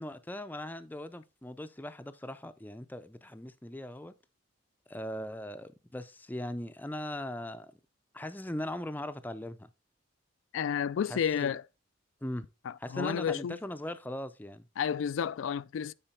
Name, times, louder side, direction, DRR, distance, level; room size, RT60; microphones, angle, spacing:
voice 1, 0.0-4.1 4.9-7.7 8.1-9.7 11.1-11.5 12.2-12.5 12.8-14.7, left 1 dB, 10° left, 0.4 m, -39 dB
voice 2, 10.5-11.6 12.7-13.6 14.8-15.9, left 8 dB, 75° left, 0.3 m, -31 dB
8.9 x 4.5 x 4.2 m
head